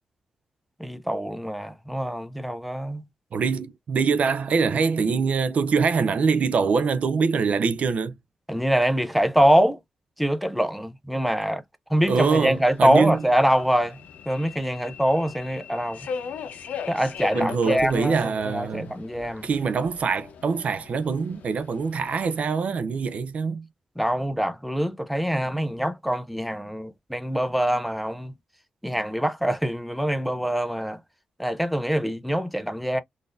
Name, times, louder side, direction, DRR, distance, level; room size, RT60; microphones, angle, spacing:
voice 1, 0.8-3.1 8.5-9.8 10.2-11.6 11.9-14.0 14.3-16.0 16.9-19.4 24.0-28.3 28.8-31.0 31.4-33.0, equal, ahead, 0.5 m, -24 dB
voice 2, 3.3-8.1 12.1-13.2 17.3-18.9 19.4-23.7, right 5 dB, 60° right, 0.4 m, -24 dB
Subway metro underground, 11.9-22.5, left 6 dB, 85° left, 0.6 m, -38 dB
3.8 x 2.5 x 2.5 m
wide cardioid pair, 115°, 3 cm